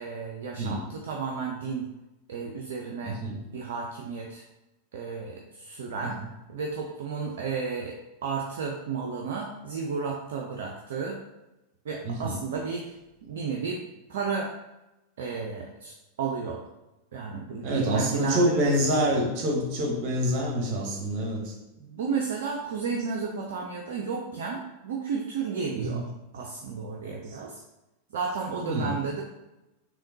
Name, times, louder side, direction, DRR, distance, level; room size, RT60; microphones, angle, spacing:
voice 1, 0.0-1.9 2.3-3.2 3.5-4.4 4.9-6.2 6.5-8.0 8.2-11.2 11.8-12.9 13.2-13.8 14.1-14.5 15.2-16.6 17.1-18.7 21.8-26.0 26.3-27.6 28.1-29.2, right 5 dB, 60° right, 0 dB, 0.4 m, -32 dB
voice 2, 3.0-3.4 6.0-6.1 12.0-12.4 17.6-21.5 25.8-26.0 28.7-29.0, equal, 40° right, -1 dB, 1.0 m, -26 dB
3.5 x 3.0 x 2.7 m, 0.97 s
figure-of-eight pair, 90°, 0 cm